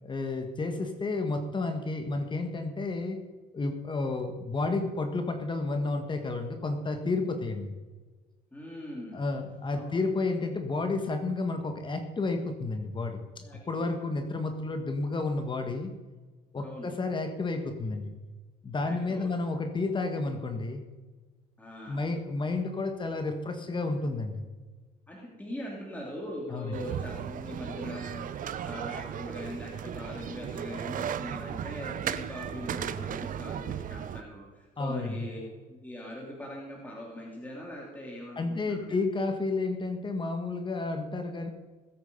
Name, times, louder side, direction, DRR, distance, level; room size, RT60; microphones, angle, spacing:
voice 1, 0.0-3.2 3.5-7.7 9.1-15.9 16.5-18.1 18.6-20.8 21.9-24.4 26.5-26.8 34.8-35.2 38.3-41.5, left 3 dB, 30° left, 6 dB, 1.6 m, -31 dB
voice 2, 8.5-9.2 9.7-9.9 13.4-14.0 16.6-16.9 18.8-19.3 21.6-22.0 25.1-39.0, equal, 10° left, -3 dB, 2.9 m, -41 dB
sound 1, 26.7-34.2, right 9 dB, 55° right, 0.8 m, -36 dB
19.5 x 8.7 x 5.4 m, 1.3 s
cardioid pair, 110°, 17 cm